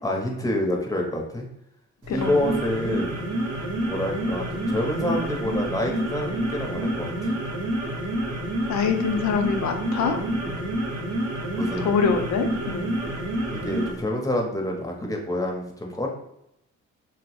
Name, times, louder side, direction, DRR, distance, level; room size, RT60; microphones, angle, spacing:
voice 1, 0.0-1.5 2.1-3.2 3.9-7.3 10.2-10.7 11.6-12.1 12.7-12.9 13.5-16.1, left 1 dB, 10° left, 0 dB, 0.7 m, -28 dB
sound 1, 2.0-14.0, right 1 dB, 50° right, 0.8 m, -28 dB
voice 2, 8.7-10.2 11.8-12.9, left 6 dB, 70° left, 5 dB, 0.6 m, -24 dB
3.1 x 2.0 x 3.0 m, 0.80 s
cardioid pair, 90°, 30 cm